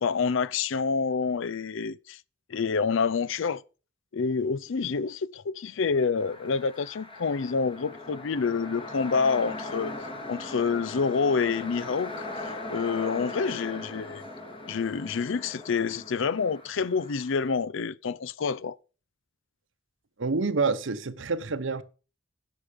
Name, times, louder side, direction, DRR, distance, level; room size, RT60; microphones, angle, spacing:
voice 1, 0.0-2.2 2.5-3.6 4.1-9.9 10.3-12.2 12.7-14.2 14.7-18.8, left 5 dB, 65° left, 0.5 m, -27 dB
sound 1, 6.2-17.5, left 2 dB, 25° left, 2.2 m, -39 dB
voice 2, 20.2-21.8, right 4 dB, 65° right, 0.9 m, -27 dB
10.0 x 6.3 x 6.7 m
head